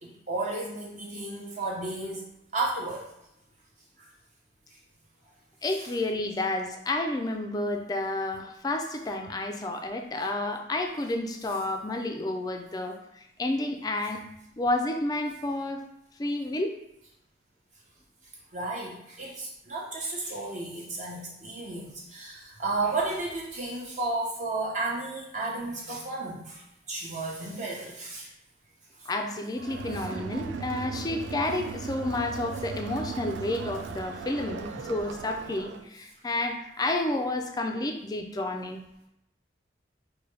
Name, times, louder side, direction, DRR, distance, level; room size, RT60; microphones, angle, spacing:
voice 1, 0.0-2.2 2.5-3.0 18.5-26.6 26.9-28.3 34.5-34.6, right 2 dB, 40° right, -4 dB, 0.7 m, -33 dB
voice 2, 5.6-14.2 14.6-15.8 16.2-16.7 29.1-38.8, left 2 dB, 20° left, 5 dB, 0.3 m, -30 dB
Crowd, 29.6-35.9, right 5 dB, 85° right, 0.3 m, -37 dB
4.7 x 2.2 x 3.2 m, 0.82 s
head